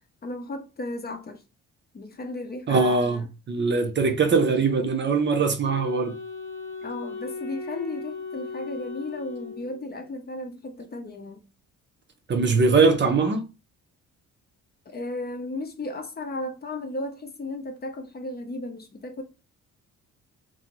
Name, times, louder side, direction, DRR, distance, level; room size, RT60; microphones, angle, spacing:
voice 1, 0.2-1.4 1.9-3.2 6.8-11.4 14.9-19.2, left 2 dB, 30° left, 0.7 m, -35 dB
voice 2, 2.7-6.1 12.3-13.4, right 4 dB, 40° right, 0.7 m, -22 dB
Wind instrument woodwind instrument, 5.6-10.1, left 4 dB, 70° left, 1.0 m, -37 dB
2.7 x 2.6 x 2.9 m
cardioid pair, 90°, 30 cm